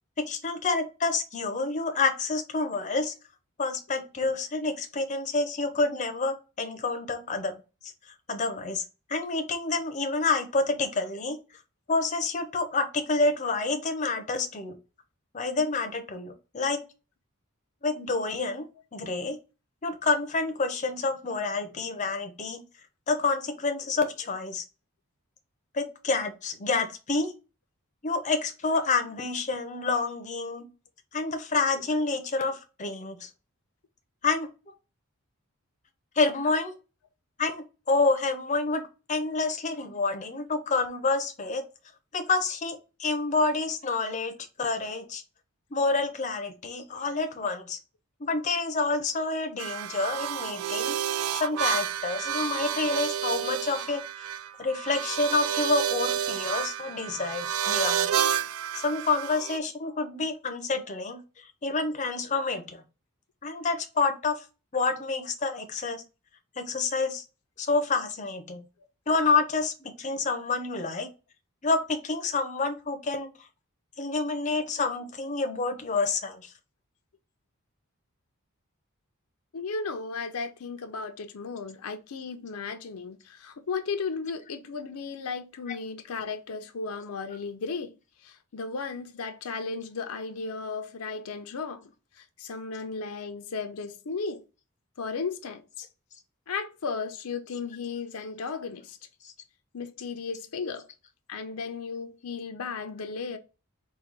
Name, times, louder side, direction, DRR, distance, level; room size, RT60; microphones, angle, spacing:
voice 1, 0.2-3.1 3.6-7.6 8.3-11.4 11.9-14.8 15.3-16.8 17.8-18.6 18.9-19.4 19.8-22.6 23.1-24.6 25.7-27.3 28.0-30.7 31.1-33.3 34.2-34.5 36.2-36.7 37.4-38.8 39.1-41.6 42.1-45.2 45.7-47.8 48.2-51.0 51.3-54.3 54.6-58.1 58.8-62.8 63.4-64.4 64.7-66.0 66.6-67.2 67.6-68.6 69.1-71.1 71.6-73.3 74.0-76.5 99.2-99.3, left 3 dB, 35° left, 0.6 m, -28 dB
sound 1, 49.6-59.6, right 9 dB, 80° right, 0.3 m, -30 dB
voice 2, 79.5-87.9 88.2-94.4 95.0-95.9 96.5-99.0 99.7-100.9 101.3-103.4, left 4 dB, 85° left, 0.6 m, -35 dB
3.8 x 2.3 x 4.5 m
head